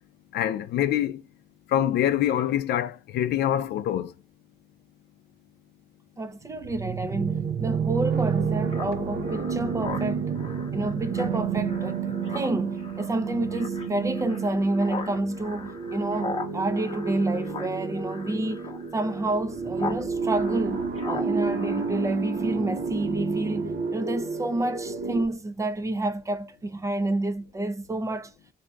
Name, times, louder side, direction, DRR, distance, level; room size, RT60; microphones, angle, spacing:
voice 1, 0.3-1.2 1.7-4.1, left 11 dB, 85° left, 0.5 m, -25 dB
voice 2, 6.2-10.3 10.7-18.7 18.9-28.3, right 2 dB, 20° right, 0.4 m, -29 dB
sound 1, 6.5-25.2, right 5 dB, 75° right, 0.7 m, -30 dB
Speech synthesizer, 8.7-20.0 20.3-22.5, left 4 dB, 35° left, 0.8 m, -39 dB
6.1 x 2.7 x 2.3 m
cardioid pair, 115°, 17 cm